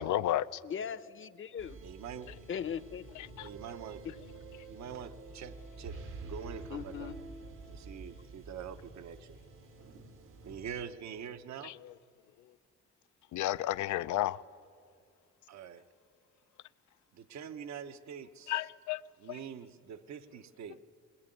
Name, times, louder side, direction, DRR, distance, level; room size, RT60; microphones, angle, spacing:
voice 1, 0.0-0.6 3.2-3.5 11.6-11.9 13.3-14.4 18.5-19.0 19.3-19.4, left 13 dB, 75° left, 0.6 m, -32 dB
voice 2, 0.6-1.8 2.5-3.1 6.7-7.2, left 8 dB, 40° left, 0.9 m, -39 dB
sound 1, 1.6-10.9, right 3 dB, 85° right, 2.7 m, -48 dB
voice 3, 1.8-2.5 3.4-4.0 4.7-7.1 7.7-9.4 10.4-11.8 15.5-15.9 17.1-18.5 19.2-20.8, right 8 dB, 65° right, 1.1 m, -45 dB
21.5 x 20.5 x 9.2 m
cardioid pair, 90°, 30 cm